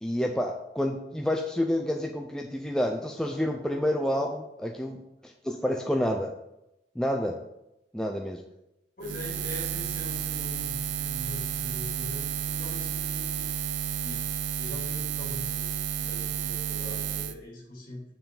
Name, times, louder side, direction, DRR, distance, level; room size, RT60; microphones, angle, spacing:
voice 1, 0.0-5.0 5.2-6.3 7.0-7.3 7.9-8.4, equal, 5° left, 2 dB, 0.4 m, -29 dB
voice 2, 9.0-13.5 14.0-14.2 14.6-15.7 16.0-18.0, left 1 dB, 50° left, -3 dB, 2.8 m, -42 dB
Buzz, 9.0-17.3, right 9 dB, 85° right, 0.5 m, -31 dB
7.7 x 6.9 x 3.8 m, 0.88 s
head